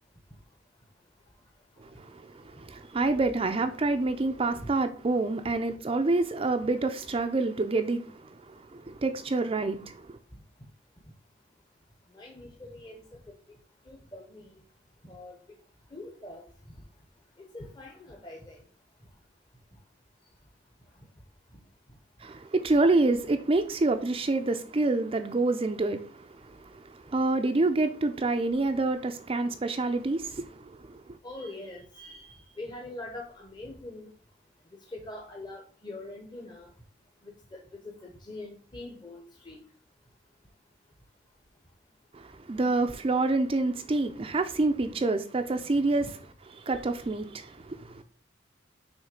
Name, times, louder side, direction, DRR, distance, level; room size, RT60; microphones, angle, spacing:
voice 1, 1.8-10.2 22.2-31.2 42.1-46.0 46.6-48.0, right 2 dB, 30° right, 0.5 m, -28 dB
voice 2, 12.1-13.4 13.9-14.6 15.0-15.4 15.9-16.4 17.4-18.6 31.2-34.1 34.9-36.7 37.2-39.6 46.0-46.1, left 2 dB, 25° left, 0.9 m, -43 dB
6.3 x 3.2 x 5.1 m
head